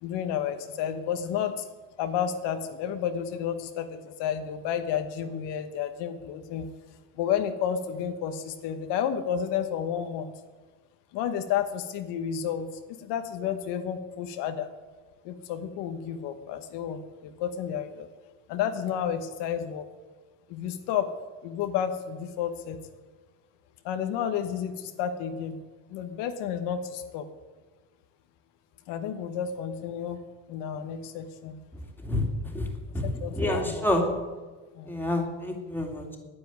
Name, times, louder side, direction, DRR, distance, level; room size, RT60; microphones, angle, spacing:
voice 1, 0.0-1.7 2.0-6.7 7.1-10.3 11.1-14.7 15.2-18.1 18.5-19.9 20.5-21.1 21.4-22.8 23.8-25.6 25.9-27.3 28.9-31.6 33.0-33.9 34.7-34.9, left 8 dB, 70° left, 7 dB, 1.3 m, -31 dB
voice 2, 33.3-34.1 34.9-36.2, left 1 dB, 5° left, 1 dB, 2.6 m, -28 dB
10.0 x 9.6 x 9.4 m, 1.3 s
cardioid pair, 120°, 43 cm